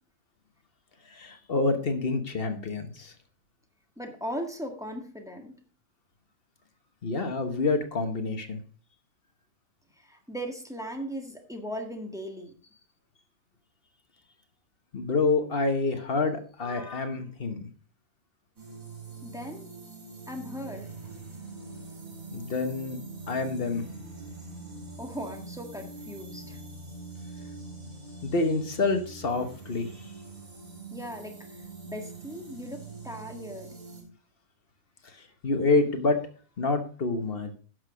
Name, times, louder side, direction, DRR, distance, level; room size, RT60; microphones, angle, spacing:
voice 1, 1.1-3.1 7.0-8.6 14.9-17.6 22.3-23.0 23.3-23.8 28.2-30.0 35.4-36.2 36.6-37.6, left 3 dB, 45° left, 8 dB, 1.3 m, -27 dB
voice 2, 4.0-5.5 10.0-12.5 19.2-19.7 20.3-21.1 25.0-26.6 30.9-33.8, equal, ahead, 3 dB, 1.7 m, -38 dB
sound 1, 18.6-34.0, right 3 dB, 85° right, 4.9 m, -43 dB
11.0 x 6.3 x 5.0 m, 0.41 s
omnidirectional pair, 1.4 m